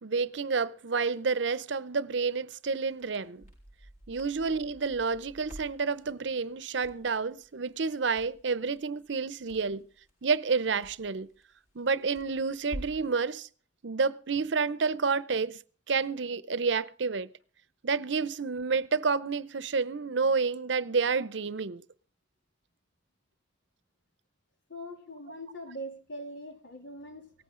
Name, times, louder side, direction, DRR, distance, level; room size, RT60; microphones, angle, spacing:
voice 1, 0.0-3.4 4.1-9.8 10.2-11.3 11.7-13.5 13.8-15.6 15.9-17.3 17.8-21.8, right 4 dB, 75° right, 0.7 m, -29 dB
Crackle, 2.9-13.1, equal, 45° left, 5.8 m, -49 dB
voice 2, 24.7-27.3, equal, 80° left, 3.0 m, -42 dB
18.0 x 15.0 x 3.8 m
head